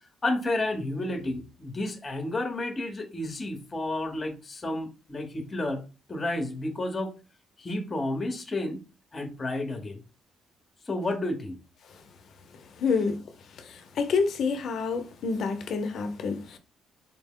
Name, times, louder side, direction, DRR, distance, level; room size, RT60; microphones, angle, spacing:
voice 1, 0.2-5.8 6.1-7.1 7.6-8.8 9.1-10.0 10.9-11.6, left 2 dB, 30° left, 0.9 m, -31 dB
voice 2, 12.8-13.2 13.6-16.6, left 5 dB, 65° left, 0.6 m, -28 dB
4.4 x 2.1 x 3.6 m
cardioid pair, 90°, 0 cm